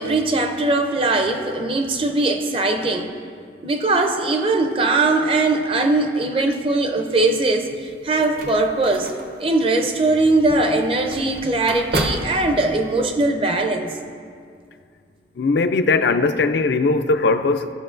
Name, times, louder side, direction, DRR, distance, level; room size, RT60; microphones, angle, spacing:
voice 1, 0.0-3.1 3.6-9.1 9.4-13.9, right 2 dB, 30° right, 5 dB, 0.5 m, -20 dB
sound 1, 7.7-13.0, right 1 dB, 60° right, 0.8 m, -31 dB
voice 2, 15.4-17.7, left 3 dB, 70° left, 9 dB, 0.4 m, -19 dB
15.5 x 6.0 x 2.5 m, 2.2 s
head